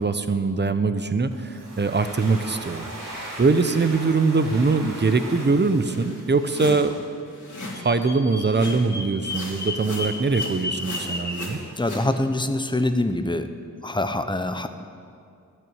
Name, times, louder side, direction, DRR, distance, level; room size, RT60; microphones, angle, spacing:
voice 1, 0.0-6.9 7.8-11.6, right 4 dB, 30° right, 10 dB, 0.8 m, -22 dB
Domestic sounds home sounds, 1.3-6.9, right 1 dB, 75° right, 3.3 m, -39 dB
sound 1, 5.8-8.0 8.4-9.0 9.2-12.1, left 1 dB, 65° left, 2.9 m, -38 dB
Bird vocalization bird call bird song, 7.7-11.6, left 2 dB, 30° left, 1.1 m, -33 dB
voice 2, 11.8-13.5 13.8-14.7, left 2 dB, 15° left, 8 dB, 0.8 m, -24 dB
12.0 x 6.7 x 8.8 m, 2.3 s
wide cardioid pair, 55°, 33 cm